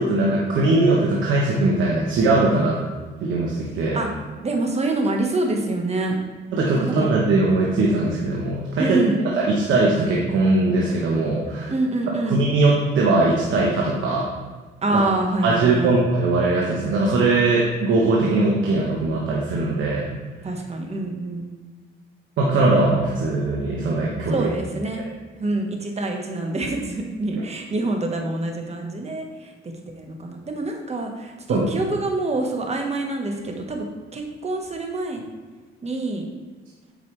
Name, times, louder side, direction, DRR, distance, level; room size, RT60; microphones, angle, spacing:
voice 1, 0.0-2.8 3.2-4.0 6.5-9.0 9.4-11.7 12.3-14.3 14.9-15.0 15.4-20.1 22.4-24.5 31.5-31.7, right 2 dB, 75° right, -3 dB, 1.2 m, -20 dB
voice 2, 4.4-6.2 6.8-7.1 8.8-9.3 11.7-12.4 14.8-16.0 20.4-21.5 24.3-25.1 25.4-29.5 30.0-33.9 34.1-35.2 35.8-36.2, right 2 dB, 35° right, 2 dB, 1.3 m, -26 dB
8.8 x 5.3 x 3.3 m, 1.4 s
cardioid pair, 90°, 20 cm